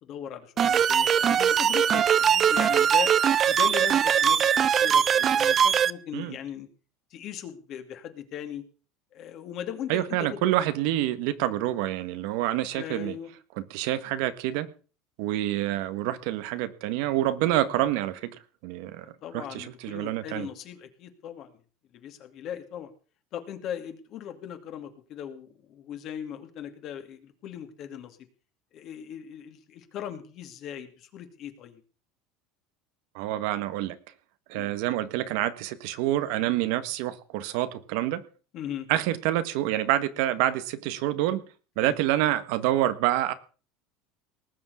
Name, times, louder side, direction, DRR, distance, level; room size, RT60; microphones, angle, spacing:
voice 1, 0.0-3.1 3.5-4.5 4.8-6.7 7.1-8.6 9.1-10.6 12.7-13.3 19.2-21.5 21.9-22.9 23.3-28.2 28.7-31.8 34.5-34.8 38.5-38.9 41.8-42.0, left 9 dB, 45° left, 7 dB, 2.6 m, -38 dB
sound 1, 0.6-5.9, right 8 dB, 30° right, 0.6 m, -21 dB
voice 2, 9.9-13.2 13.6-14.7 15.2-18.3 18.6-20.5 33.1-34.0 34.5-38.2 38.9-41.4 41.8-43.3, right 14 dB, 70° right, 12 dB, 1.4 m, -27 dB
19.0 x 7.4 x 7.0 m, 0.38 s
supercardioid pair, 145°, 0 cm